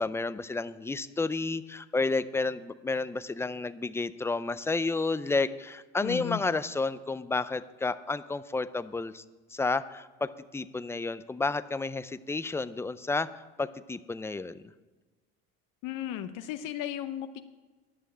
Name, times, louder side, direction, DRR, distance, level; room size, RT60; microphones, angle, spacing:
voice 1, 0.0-9.2 9.5-13.3 13.6-14.6, left 3 dB, 10° left, 14 dB, 0.4 m, -31 dB
voice 2, 6.0-6.4 15.8-17.4, left 11 dB, 65° left, 9 dB, 0.8 m, -35 dB
11.0 x 6.4 x 8.9 m, 1.3 s
supercardioid pair, 100°, 34 cm